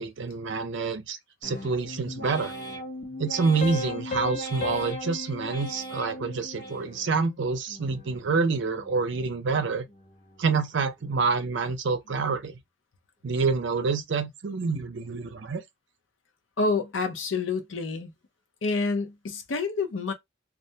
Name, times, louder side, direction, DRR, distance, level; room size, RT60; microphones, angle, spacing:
voice 1, 0.0-2.5 3.2-9.8 10.4-12.5 13.2-15.6, right 4 dB, 65° right, 0.5 m, -27 dB
sound 1, 1.4-7.2 7.7-8.3 8.7-9.4 9.8-10.5 10.9-11.5 12.0-12.6, equal, 55° left, 1.0 m, -40 dB
Piano, 3.6-6.9, left 3 dB, 35° left, 0.3 m, -36 dB
voice 2, 16.6-18.1 18.6-20.1, left 3 dB, 75° left, 0.6 m, -28 dB
2.4 x 2.1 x 2.7 m
head